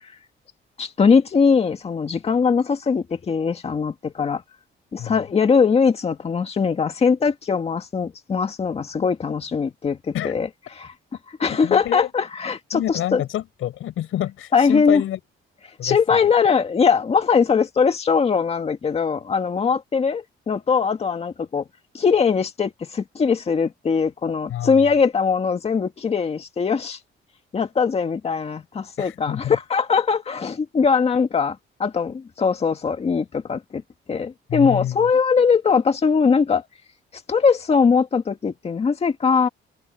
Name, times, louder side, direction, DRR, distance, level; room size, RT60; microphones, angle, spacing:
voice 1, 0.8-4.4 4.9-10.5 10.8-10.9 11.4-13.2 14.5-15.0 15.8-21.6 21.9-27.0 27.5-33.8 34.1-36.7 37.3-39.5, left 5 dB, 30° left, 2.0 m, -21 dB
voice 2, 11.5-12.1 12.7-15.2 15.8-16.2 24.5-24.9 29.0-29.6 34.5-35.1, left 12 dB, 85° left, 5.6 m, -28 dB
cardioid pair, 165°, 21 cm